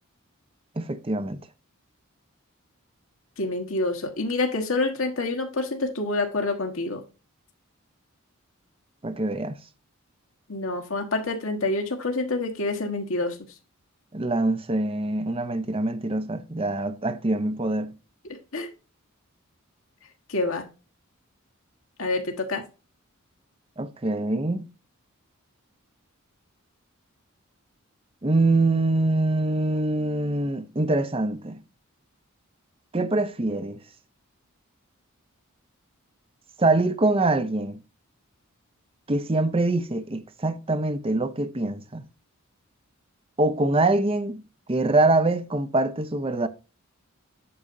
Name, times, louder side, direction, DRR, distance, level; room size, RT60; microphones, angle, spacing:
voice 1, 0.8-1.4 9.0-9.6 14.1-18.0 23.8-24.7 28.2-31.6 32.9-33.8 36.6-37.8 39.1-42.0 43.4-44.4 44.7-46.5, right 2 dB, 25° right, 0.7 m, -24 dB
voice 2, 3.4-7.0 10.5-13.4 18.5-18.7 20.3-20.6 22.0-22.6, left 2 dB, 65° left, 1.5 m, -27 dB
8.6 x 6.4 x 2.6 m
head